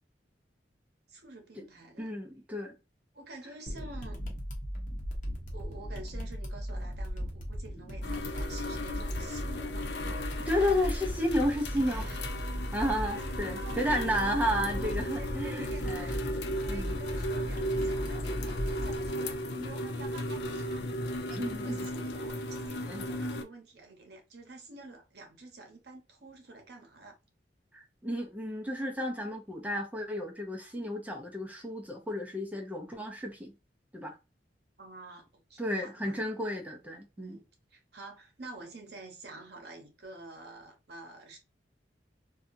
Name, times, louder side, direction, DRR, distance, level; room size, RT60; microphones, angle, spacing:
voice 1, 1.1-2.1 3.1-4.2 5.5-9.9 11.9-12.3 13.0-14.1 14.8-16.4 16.7-20.8 21.3-27.2 34.8-36.2 37.2-41.4, right 2 dB, 65° right, 0.9 m, -48 dB
voice 2, 2.0-2.7 10.2-12.0 12.7-16.2 16.7-17.0 21.3-21.8 22.8-23.1 27.7-33.5 33.9-34.1 35.6-37.3, equal, 10° right, 0.6 m, -32 dB
sound 1, 3.7-19.1, equal, 45° left, 0.8 m, -37 dB
sound 2, 8.0-23.4, left 1 dB, 70° left, 0.5 m, -36 dB
2.7 x 2.3 x 2.6 m
head